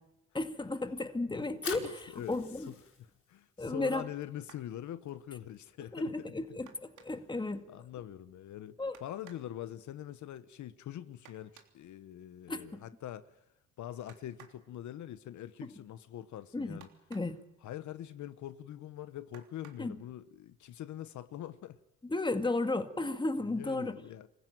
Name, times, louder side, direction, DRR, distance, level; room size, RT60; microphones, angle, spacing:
voice 1, 0.3-2.7 3.6-4.1 5.9-7.6 8.8-9.0 12.5-12.8 16.5-16.8 17.1-17.4 19.8-19.9 22.0-24.0, left 2 dB, 15° left, 2.0 m, -34 dB
voice 2, 1.6-6.1 7.7-13.4 13.8-16.9 17.6-21.8 23.4-24.3, left 12 dB, 75° left, 1.1 m, -44 dB
Fire, 1.6-7.5, left 5 dB, 45° left, 4.9 m, -48 dB
sound 1, 4.4-4.8 6.6-7.4 8.9-9.5 11.2-11.8 14.1-14.7 16.8-17.4 19.3-19.9 21.0-21.1 21.6-21.8, right 8 dB, 80° right, 3.3 m, -58 dB
26.5 x 15.5 x 9.2 m
cardioid pair, 90°, 30 cm